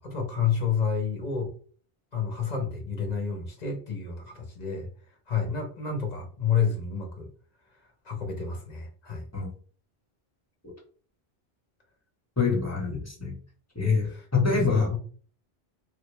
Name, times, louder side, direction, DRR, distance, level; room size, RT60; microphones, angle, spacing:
voice 1, 0.0-1.5 2.1-4.9 5.3-7.3 8.0-9.3 14.0-15.0, left 6 dB, 45° left, 0.8 m, -30 dB
voice 2, 12.4-13.4 13.7-14.9, left 4 dB, 15° left, 1.0 m, -25 dB
3.3 x 2.2 x 3.2 m
omnidirectional pair, 1.0 m